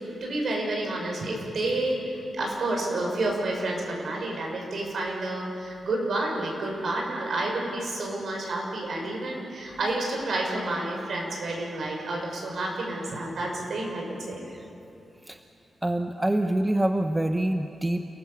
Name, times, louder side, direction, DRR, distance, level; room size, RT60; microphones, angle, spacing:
voice 1, 0.0-14.4, right 2 dB, 60° right, -1 dB, 6.6 m, -30 dB
voice 2, 15.8-18.1, right 1 dB, 15° right, 6 dB, 0.8 m, -26 dB
29.0 x 19.5 x 7.3 m, 2.9 s
wide cardioid pair, 140°, 0 cm